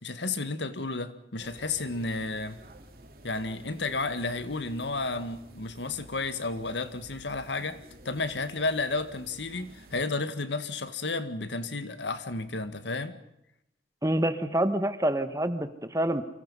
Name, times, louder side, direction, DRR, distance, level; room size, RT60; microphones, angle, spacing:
voice 1, 0.0-2.6 3.2-13.2, left 3 dB, 80° left, 11 dB, 1.8 m, -32 dB
sound 1, 1.4-10.0, right 1 dB, 50° right, 3.0 m, -51 dB
voice 2, 14.0-16.2, right 1 dB, 15° right, 11 dB, 1.3 m, -27 dB
29.5 x 25.5 x 5.6 m, 0.81 s
head